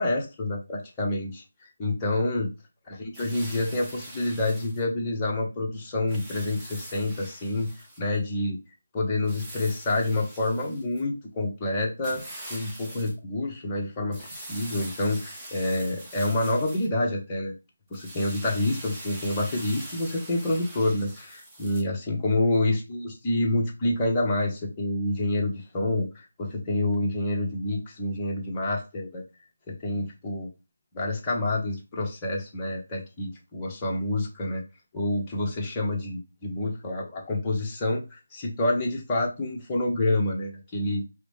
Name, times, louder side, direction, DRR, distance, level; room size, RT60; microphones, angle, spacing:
voice 1, 0.0-1.4 1.8-2.5 3.0-7.7 8.0-8.6 8.9-12.2 12.5-17.5 17.9-29.2 29.7-30.5 30.9-34.6 34.9-41.0, left 2 dB, 15° left, -2 dB, 0.9 m, -28 dB
sound 1, 3.1-4.8 6.1-8.1 9.2-11.0 12.0-13.1 14.1-16.9 17.9-21.8, right 1 dB, 10° right, 0.8 m, -43 dB
4.8 x 2.1 x 3.1 m, 0.28 s
figure-of-eight pair, 165°, 0 cm